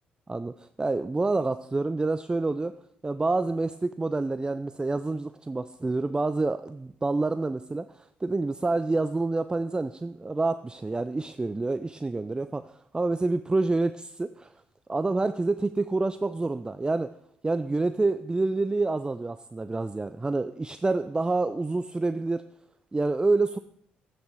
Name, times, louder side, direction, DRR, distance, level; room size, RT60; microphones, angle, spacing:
voice 1, 0.3-2.7 3.0-14.5 14.9-17.1 17.4-22.4 22.9-23.6, right 3 dB, 20° right, 12 dB, 0.4 m, -28 dB
11.0 x 8.8 x 3.7 m, 0.73 s
hypercardioid pair, 45°, 5 cm